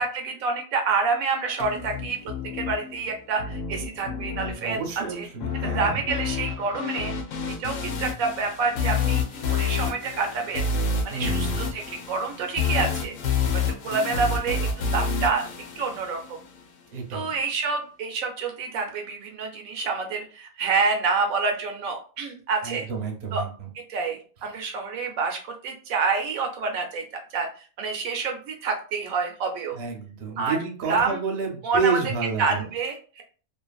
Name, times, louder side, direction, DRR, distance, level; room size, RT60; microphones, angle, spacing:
voice 1, 0.0-2.2 2.4-4.8 5.2-5.3 5.5-7.1 7.6-9.2 9.5-10.7 11.0-13.1 13.8-14.6 14.9-15.4 15.8-16.4 17.1-22.9 23.3-23.4 23.7-27.0 27.3-27.5 27.8-29.8 30.4-30.6 30.9-31.2 31.6-32.0 32.4-33.2, right 4 dB, 80° right, 3 dB, 1.0 m, -27 dB
sound 1, 1.6-16.6, left 5 dB, 70° left, 0.9 m, -29 dB
voice 2, 4.6-6.0 11.1-11.7 16.9-17.3 22.6-23.7 29.7-32.6, right 5 dB, 55° right, 2 dB, 0.9 m, -30 dB
2.8 x 2.5 x 2.3 m, 0.38 s
omnidirectional pair, 1.5 m